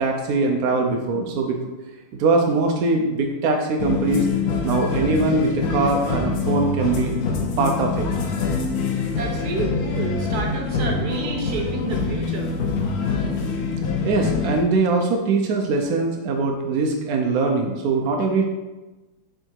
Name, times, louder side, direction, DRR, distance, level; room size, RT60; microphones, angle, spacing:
voice 1, 0.0-1.6 2.2-4.3 4.6-7.1 7.6-8.1 14.0-18.4, right 3 dB, 70° right, 2 dB, 0.8 m, -22 dB
sound 1, 3.8-14.6, left 4 dB, 65° left, 0.9 m, -25 dB
voice 2, 9.1-12.5, right 3 dB, 55° right, 1 dB, 1.3 m, -29 dB
6.7 x 3.8 x 4.5 m, 1.1 s
omnidirectional pair, 2.3 m